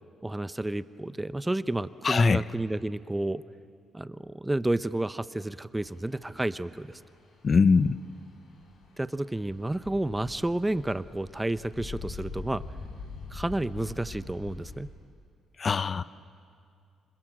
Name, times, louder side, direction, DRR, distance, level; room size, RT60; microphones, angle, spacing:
voice 1, 0.2-3.4 3.9-7.0 9.0-12.6 13.3-14.9, right 1 dB, 10° right, 14 dB, 0.7 m, -31 dB
voice 2, 2.0-2.4 7.4-8.0 15.6-16.0, left 5 dB, 40° left, 15 dB, 0.7 m, -22 dB
sound 1, 5.8-14.8, left 4 dB, 75° left, 5.2 m, -44 dB
29.0 x 26.0 x 7.7 m, 2.3 s
cardioid pair, 90°, 0 cm